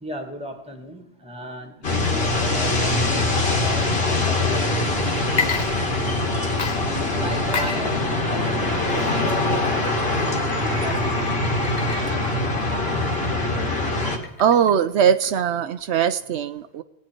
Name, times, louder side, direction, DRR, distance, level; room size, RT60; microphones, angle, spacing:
voice 1, 0.0-6.3 6.9-9.9 10.1-11.2 11.7-12.3, equal, 5° right, 5 dB, 1.8 m, -36 dB
sound 1, 1.8-14.2, left 2 dB, 65° left, 2.2 m, -23 dB
Water / Liquid, 5.2-6.3 6.6-14.8, left 6 dB, 90° left, 1.5 m, -33 dB
voice 2, 14.4-16.8, right 8 dB, 80° right, 11 dB, 0.9 m, -20 dB
19.5 x 9.4 x 4.4 m, 0.96 s
omnidirectional pair, 1.1 m